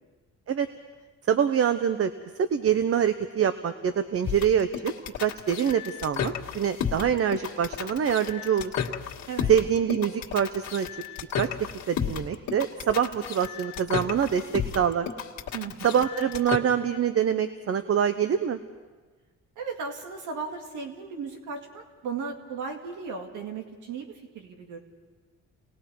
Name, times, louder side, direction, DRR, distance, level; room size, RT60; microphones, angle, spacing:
voice 1, 1.3-2.1 2.4-4.9 5.2-8.7 9.5-10.9 11.4-11.5 11.9-15.1 15.8-18.6, right 8 dB, 50° right, 10 dB, 0.9 m, -25 dB
sound 1, 4.2-16.6, left 8 dB, 65° left, 1.8 m, -33 dB
voice 2, 15.5-16.0 19.6-24.8, right 5 dB, 80° right, 3 dB, 2.2 m, -36 dB
30.0 x 20.0 x 4.7 m, 1.4 s
cardioid pair, 90°, 30 cm